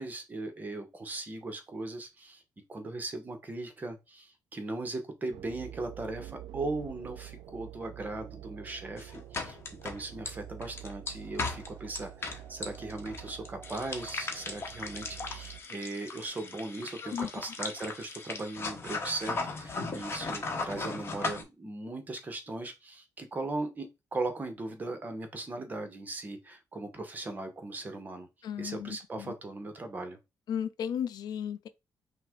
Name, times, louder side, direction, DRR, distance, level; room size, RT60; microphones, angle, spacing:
voice 1, 0.0-2.4 2.7-9.6 9.8-28.3 28.6-30.2, right 2 dB, 25° right, 1.0 m, -38 dB
sound 1, 5.3-15.6, right 12 dB, 75° right, 0.4 m, -47 dB
sound 2, 9.0-21.4, left 3 dB, 35° left, 1.0 m, -37 dB
voice 2, 28.4-29.3 30.5-31.7, left 8 dB, 70° left, 0.4 m, -35 dB
5.6 x 2.2 x 3.6 m
cardioid pair, 140°, 7 cm